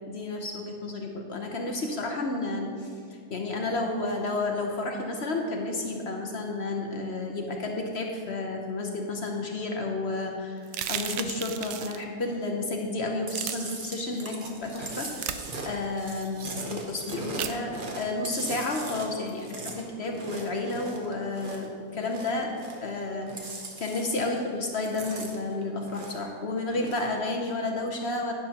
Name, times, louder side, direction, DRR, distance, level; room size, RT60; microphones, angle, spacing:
voice 1, 0.1-22.5 22.8-28.3, left 2 dB, 50° left, 1 dB, 0.7 m, -31 dB
sound 1, 10.7-12.0 13.3-13.5 15.2-15.4 17.4-17.6, right 10 dB, 75° right, 1.1 m, -33 dB
Chewing mastication, 13.3-21.7 22.0-23.0 23.2-24.4 24.6-26.3 26.7-27.1, right 3 dB, 45° right, 0.7 m, -39 dB
11.5 x 9.9 x 2.9 m, 2.1 s
omnidirectional pair, 2.1 m